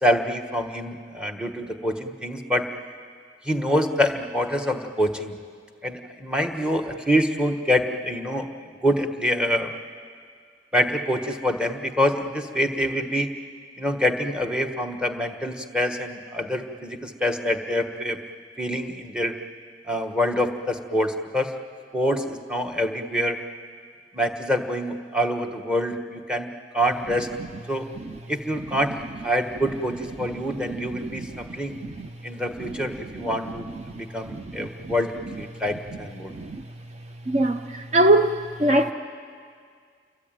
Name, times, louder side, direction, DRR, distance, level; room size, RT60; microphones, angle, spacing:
voice 1, 0.0-2.7 3.4-5.4 5.8-8.5 8.8-9.7 10.7-13.3 13.8-18.2 18.6-19.4 19.9-21.5 21.9-23.4 24.1-27.3 27.7-27.9 28.3-31.8 32.2-33.7 33.9-36.3, equal, 5° right, 1.4 m, -26 dB
voice 2, 34.6-34.9 36.3-36.6 37.3-38.3 38.6-38.9, right 1 dB, 35° right, 0.7 m, -21 dB
28.0 x 23.0 x 9.1 m
head